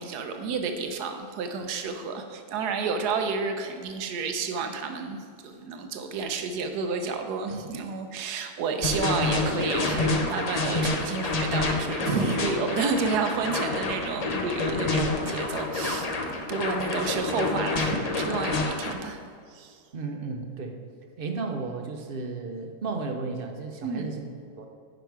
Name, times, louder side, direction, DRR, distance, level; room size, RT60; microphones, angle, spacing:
voice 1, 0.0-19.2 19.5-19.8 23.8-24.1, right 4 dB, 85° right, 6 dB, 1.3 m, -30 dB
sound 1, 8.8-18.9, left 2 dB, 40° left, 0.5 m, -28 dB
voice 2, 19.9-20.8 21.2-24.3 24.6-24.7, right 4 dB, 45° right, 4 dB, 0.8 m, -33 dB
10.0 x 5.2 x 4.7 m, 2.2 s
omnidirectional pair, 1.7 m